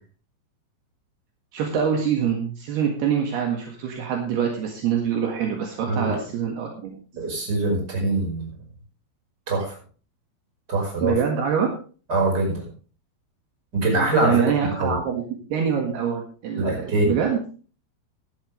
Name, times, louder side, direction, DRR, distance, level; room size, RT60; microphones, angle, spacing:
voice 1, 1.5-7.0 11.0-11.7 14.2-15.2 15.5-17.4, right 7 dB, 65° right, 1 dB, 3.6 m, -25 dB
voice 2, 7.1-8.5 9.5-9.7 10.7-11.2 12.1-12.7 13.7-15.0 16.6-17.2, right 2 dB, 20° right, 0 dB, 5.5 m, -23 dB
16.0 x 11.5 x 3.3 m, 0.38 s
omnidirectional pair, 5.2 m